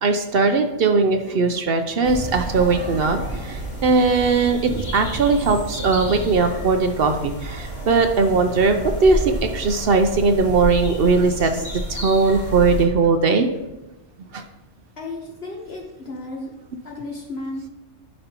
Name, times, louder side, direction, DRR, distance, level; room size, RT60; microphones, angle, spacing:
voice 1, 0.0-11.5 11.9-13.5 14.3-14.4, right 4 dB, 60° right, 7 dB, 0.7 m, -19 dB
sound 1, 2.0-12.9, equal, 35° left, 2.1 m, -31 dB
sound 2, 2.0-9.6, right 2 dB, 85° right, 1.6 m, -34 dB
voice 2, 15.0-16.5 16.8-17.7, left 2 dB, 55° left, 0 dB, 1.1 m, -33 dB
11.0 x 5.3 x 2.9 m, 1.0 s
omnidirectional pair, 1.3 m